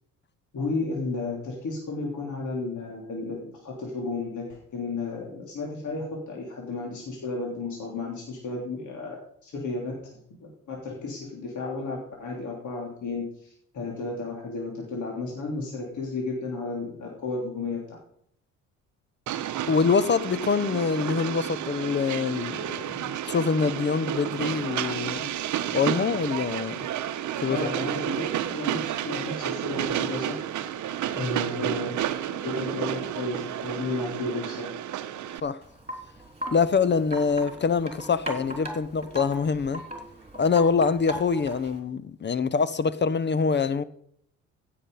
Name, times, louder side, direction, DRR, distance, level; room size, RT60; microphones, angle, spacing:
voice 1, 0.5-18.0 27.5-30.7 31.1-34.7, left 3 dB, 50° left, 3.3 m, -33 dB
Train, 19.3-35.4, right 11 dB, 50° right, 1.0 m, -31 dB
voice 2, 19.6-25.3 25.7-26.9 27.4-27.6 28.1-28.2 35.4-35.6 36.5-39.8 40.4-43.8, left 5 dB, 30° left, 0.8 m, -25 dB
Wind chime, 35.6-41.8, right 1 dB, 15° right, 3.6 m, -39 dB
15.5 x 6.8 x 5.4 m
hypercardioid pair, 55°, 38 cm